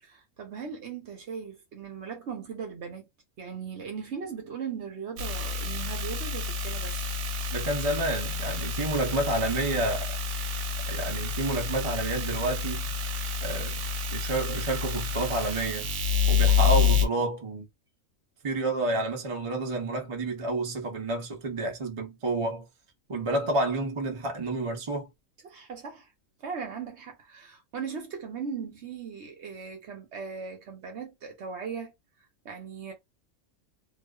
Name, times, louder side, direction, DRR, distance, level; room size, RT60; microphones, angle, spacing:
voice 1, 0.0-3.1 3.4-7.0 25.4-26.1 26.4-31.9 32.4-32.9, right 6 dB, 60° right, 0.9 m, -38 dB
sound 1, 5.2-17.1, left 5 dB, 90° right, 1.0 m, -28 dB
voice 2, 7.5-10.2 10.9-12.9 13.4-13.9 14.1-15.9 16.2-17.7 18.4-22.7 23.1-25.1, right 2 dB, 40° right, 0.5 m, -29 dB
2.4 x 2.3 x 2.2 m
omnidirectional pair, 1.5 m